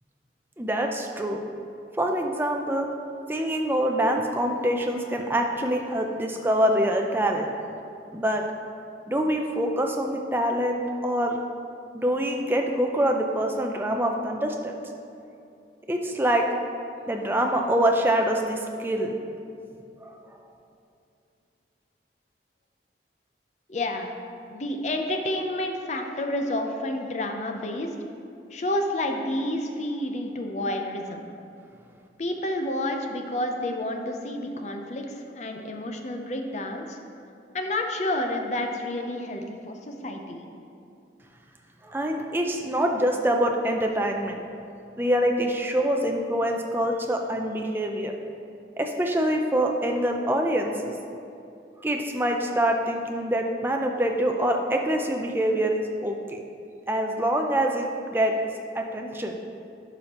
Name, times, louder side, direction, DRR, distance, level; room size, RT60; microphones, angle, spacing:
voice 1, 0.6-1.4 2.0-2.9 3.3-7.5 8.1-8.4 9.1-11.4 11.9-14.7 15.9-16.5 17.1-19.1 20.0-20.1 41.8-44.4 45.0-48.2 48.8-50.9 51.8-56.4 56.9-58.4 58.7-59.4, right 1 dB, 10° right, 2 dB, 0.4 m, -25 dB
voice 2, 23.7-24.1 24.5-27.9 28.5-31.3 32.2-37.0 37.5-40.5, left 1 dB, 40° left, 4 dB, 0.5 m, -30 dB
11.5 x 5.0 x 2.9 m, 2.6 s
head